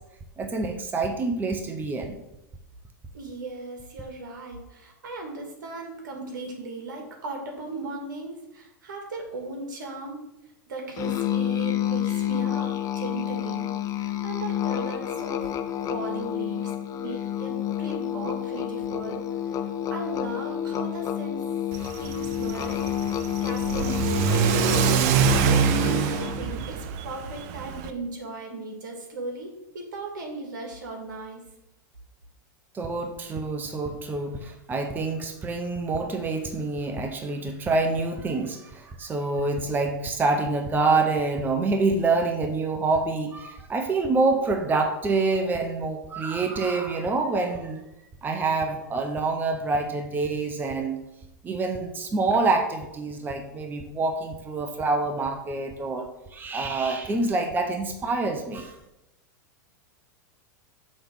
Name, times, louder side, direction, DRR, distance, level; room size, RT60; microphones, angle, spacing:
voice 1, 0.4-2.2 32.7-47.8 48.2-51.0 51.4-58.8, right 3 dB, 20° right, 5 dB, 0.7 m, -26 dB
voice 2, 3.1-10.2 10.7-13.7 13.9-15.5 15.9-19.6 19.9-21.4 22.0-22.9 23.4-24.9 25.2-31.4, right 2 dB, 75° right, 1 dB, 1.9 m, -37 dB
Musical instrument, 11.0-26.5, left 11 dB, 35° left, 0.6 m, -29 dB
Car / Accelerating revving vroom, 21.7-27.9, right 8 dB, 55° right, 0.6 m, -25 dB
6.3 x 3.4 x 6.0 m, 0.91 s
hypercardioid pair, 105°, 10 cm